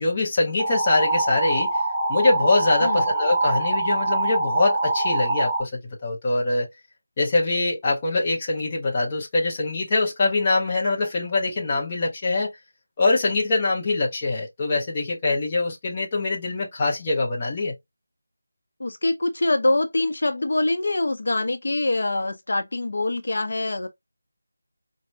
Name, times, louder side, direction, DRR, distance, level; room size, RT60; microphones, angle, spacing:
voice 1, 0.0-1.7 2.1-6.7 7.2-12.5 13.0-17.8, left 3 dB, 15° left, 0.6 m, -23 dB
sound 1, 0.6-5.6, right 2 dB, 10° right, 1.9 m, -24 dB
voice 2, 18.8-23.9, left 2 dB, 55° left, 0.6 m, -24 dB
4.3 x 2.0 x 2.5 m
figure-of-eight pair, 175°, 0 cm